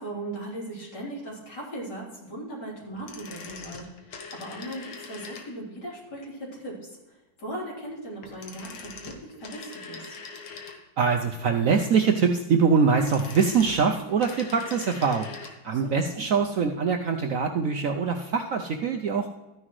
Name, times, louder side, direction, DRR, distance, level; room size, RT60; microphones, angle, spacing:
voice 1, 0.0-10.2 15.7-16.0, right 1 dB, 60° left, -5 dB, 4.2 m, -38 dB
sound 1, 2.9-5.8 8.2-11.1 12.7-15.6 15.9-16.0, left 4 dB, 85° left, 2.0 m, -42 dB
voice 2, 11.0-15.3 15.6-19.3, right 5 dB, 65° right, 4 dB, 0.9 m, -23 dB
13.5 x 9.7 x 3.2 m, 1.1 s
omnidirectional pair, 2.0 m